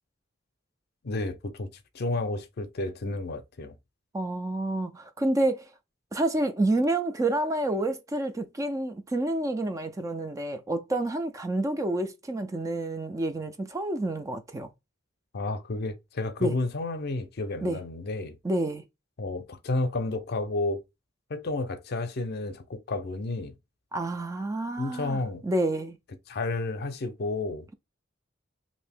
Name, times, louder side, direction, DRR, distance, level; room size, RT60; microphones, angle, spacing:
voice 1, 1.0-1.7 1.9-3.7 15.3-18.4 19.2-20.8 21.3-23.6 24.8-25.4 26.3-27.7, left 2 dB, 55° left, 0.6 m, -31 dB
voice 2, 4.1-5.6 6.1-14.7 16.4-16.5 17.6-17.8 18.4-18.8 23.9-26.0, right 2 dB, 15° right, 0.3 m, -29 dB
2.8 x 2.6 x 3.3 m
head